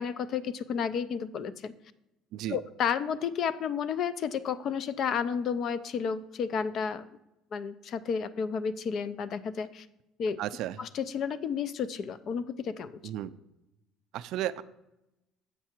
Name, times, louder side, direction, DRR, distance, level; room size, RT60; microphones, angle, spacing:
voice 1, 0.0-1.7 2.5-7.0 7.5-9.9 10.2-10.4 10.8-13.0, left 7 dB, 40° left, 15 dB, 0.3 m, -32 dB
voice 2, 10.4-10.8 13.0-13.3 14.1-14.6, right 13 dB, 55° right, 14 dB, 0.3 m, -33 dB
7.1 x 5.7 x 4.4 m, 0.94 s
cardioid pair, 165°, 0 cm